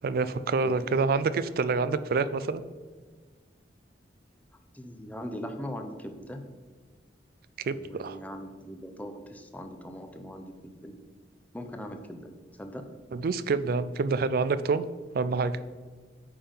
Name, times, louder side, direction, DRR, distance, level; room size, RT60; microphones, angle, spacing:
voice 1, 0.0-2.6 7.6-8.2 13.1-14.9 15.1-15.5, right 4 dB, 55° right, 14 dB, 0.4 m, -27 dB
voice 2, 4.7-6.4 7.7-11.0 11.5-12.3 12.6-12.9, equal, 10° left, 5 dB, 0.6 m, -40 dB
8.7 x 3.7 x 5.3 m, 1.5 s
head